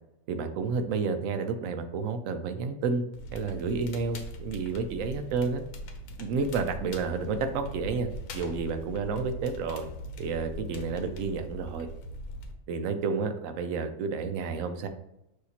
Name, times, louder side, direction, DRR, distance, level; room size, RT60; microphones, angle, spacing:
voice 1, 0.3-3.0 3.3-5.6 6.2-9.9 10.2-11.9 12.7-14.9, right 4 dB, 70° right, 7 dB, 0.9 m, -30 dB
Crackle, 3.1-12.5, equal, 75° left, 1.1 m, -41 dB
6.3 x 2.8 x 2.9 m, 0.84 s
omnidirectional pair, 1.5 m